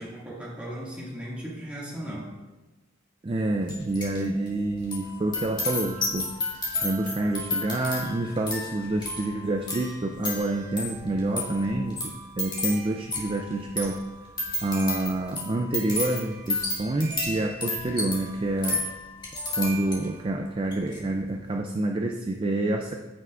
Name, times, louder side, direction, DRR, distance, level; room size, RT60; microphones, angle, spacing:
voice 1, 0.0-2.3, equal, 5° right, -7 dB, 2.1 m, -37 dB
voice 2, 3.2-14.1 14.6-18.9 19.6-22.9, right 2 dB, 25° right, 3 dB, 0.4 m, -28 dB
sound 1, 3.7-4.2 4.5-20.2 20.6-21.0, left 2 dB, 20° left, 1.9 m, -32 dB
15.0 x 5.6 x 2.5 m, 1.1 s
head